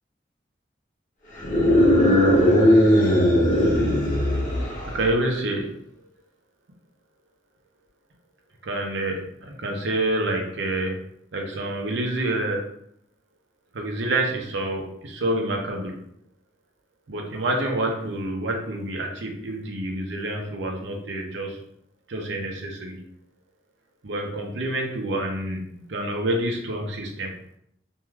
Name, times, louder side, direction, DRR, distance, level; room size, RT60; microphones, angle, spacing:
sound 1, 1.4-5.0, left 1 dB, 45° left, 0.8 m, -18 dB
voice 1, 4.8-5.7 8.6-11.0 11.3-12.6 13.7-16.0 17.1-21.6 22.1-23.0 24.0-27.4, right 1 dB, 85° right, 1 dB, 0.6 m, -27 dB
3.2 x 2.6 x 2.3 m, 0.71 s
head